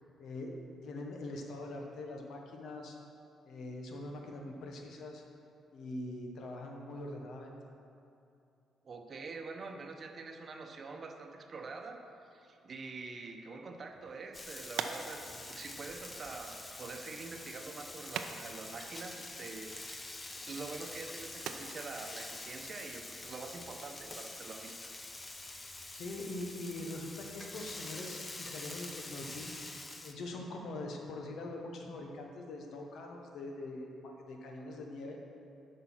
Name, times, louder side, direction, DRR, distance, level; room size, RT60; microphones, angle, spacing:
voice 1, 0.2-3.0 3.4-5.2 5.7-7.5 25.9-29.5 30.0-35.2, left 2 dB, 70° left, 2 dB, 1.1 m, -43 dB
voice 2, 8.8-12.0 12.3-24.9, right 4 dB, 45° right, 4 dB, 0.8 m, -46 dB
sound 1, 13.9-23.6, right 7 dB, 80° right, 0.5 m, -47 dB
Frying (food), 14.3-30.1, left 2 dB, 20° left, 0.7 m, -46 dB
8.1 x 5.4 x 6.0 m, 2.6 s
cardioid pair, 90°, 0 cm